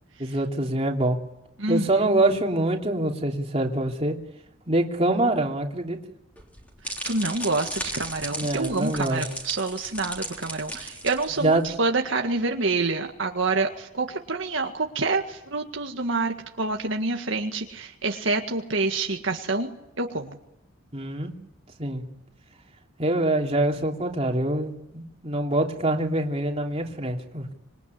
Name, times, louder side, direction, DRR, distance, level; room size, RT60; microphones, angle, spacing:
voice 1, 0.2-1.2 1.7-4.2 4.7-6.0 8.3-9.2 11.4-11.7 20.9-21.3 21.8-22.0 23.0-27.5, right 1 dB, 30° right, 1 dB, 3.0 m, -25 dB
voice 2, 1.6-1.9 7.0-19.7 20.0-20.4, right 3 dB, 65° right, 3 dB, 1.9 m, -27 dB
sound 1, 6.4-11.7, equal, 5° left, 3.7 m, -36 dB
26.5 x 22.0 x 9.8 m, 0.90 s
head